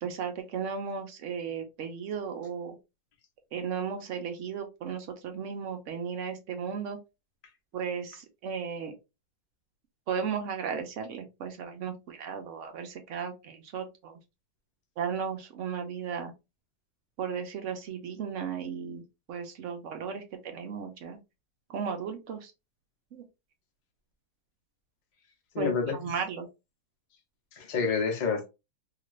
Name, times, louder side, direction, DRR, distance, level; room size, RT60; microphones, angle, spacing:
voice 1, 0.0-2.7 3.5-7.0 7.7-8.9 10.1-14.2 15.0-16.3 17.2-19.0 19.3-21.2 21.7-22.5 23.1-23.2 25.6-26.5, right 6 dB, 75° right, 0.7 m, -35 dB
voice 2, 25.5-26.0 27.5-28.5, left 5 dB, 55° left, 0.5 m, -28 dB
2.9 x 2.5 x 3.1 m
omnidirectional pair, 2.0 m